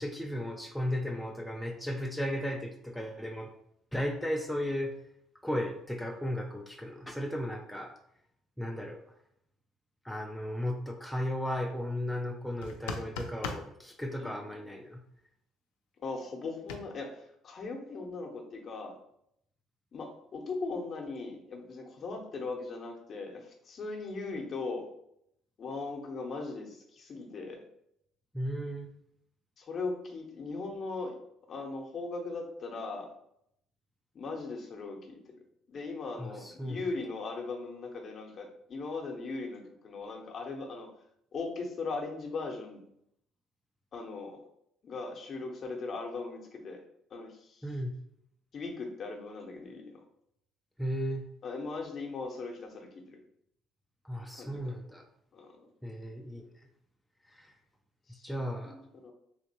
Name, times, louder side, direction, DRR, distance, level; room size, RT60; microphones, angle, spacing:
voice 1, 0.0-3.5 3.9-4.9 5.4-7.9 8.6-9.0 10.0-15.0 28.3-28.9 36.2-36.8 47.6-48.0 50.8-51.2 54.0-55.0 55.8-56.5 57.3-57.5 58.2-58.8, equal, ahead, 2 dB, 0.4 m, -35 dB
sound 1, 12.6-13.7 16.7-16.8, left 4 dB, 85° left, 0.3 m, -37 dB
voice 2, 16.0-18.9 19.9-24.9 25.6-27.6 29.6-31.2 31.5-33.1 34.1-35.4 35.7-40.9 41.3-42.8 43.9-44.4 44.8-46.8 47.1-47.7 48.5-50.0 51.4-53.2 54.4-54.7 55.3-55.7 58.1-59.1, left 3 dB, 50° left, 2 dB, 0.8 m, -39 dB
3.4 x 2.8 x 2.8 m, 0.74 s
supercardioid pair, 70°, 0 cm